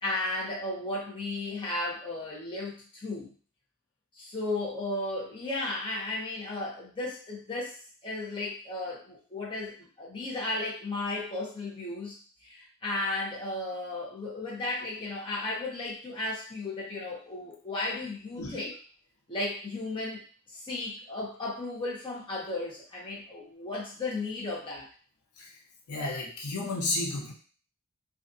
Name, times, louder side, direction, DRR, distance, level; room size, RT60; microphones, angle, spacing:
voice 1, 0.0-3.3 4.2-12.1 12.4-18.7 19.3-20.2 20.5-24.8, left 2 dB, 25° left, -5 dB, 0.8 m, -34 dB
voice 2, 25.9-27.3, left 2 dB, 85° left, -1 dB, 0.6 m, -32 dB
2.4 x 2.3 x 2.6 m, 0.41 s
head